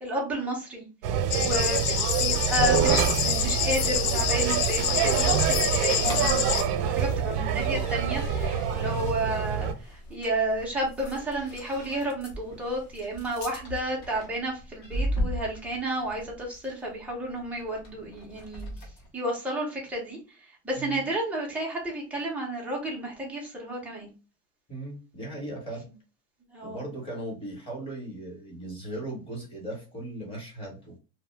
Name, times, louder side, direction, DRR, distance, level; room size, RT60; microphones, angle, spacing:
voice 1, 0.0-18.7 19.1-24.1 26.5-26.8, right 1 dB, 5° right, -4 dB, 0.4 m, -32 dB
sound 1, 1.0-9.7, right 7 dB, 85° right, 0.6 m, -26 dB
sound 2, 1.3-6.6, left 9 dB, 80° left, 0.7 m, -27 dB
sound 3, 4.1-19.1, equal, 40° left, 0.8 m, -39 dB
voice 2, 8.8-9.2 20.7-21.1 24.7-25.8 26.6-31.0, right 1 dB, 10° left, -2 dB, 1.0 m, -38 dB
2.7 x 2.0 x 3.1 m, 0.32 s
supercardioid pair, 160°, 45 cm